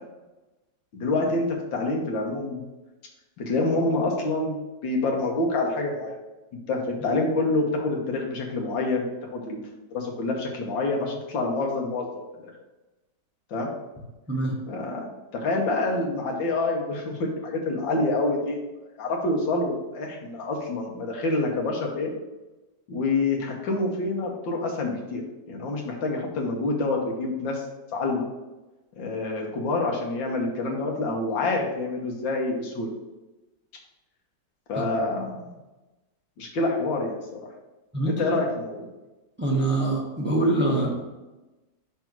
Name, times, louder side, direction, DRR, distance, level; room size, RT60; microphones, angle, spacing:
voice 1, 0.9-2.6 3.4-6.2 6.7-9.6 9.9-12.1 12.4-12.5 13.5-13.7 14.7-15.1 15.3-18.6 19.0-22.1 22.9-25.2 25.5-27.6 27.9-28.3 29.0-32.9 34.7-35.5 36.4-37.4 38.0-38.9, left 2 dB, 85° left, 0 dB, 1.9 m, -27 dB
voice 2, 37.9-38.4 39.4-41.0, right 2 dB, 10° right, -2 dB, 0.7 m, -24 dB
5.9 x 3.5 x 5.9 m, 1.1 s
omnidirectional pair, 2.0 m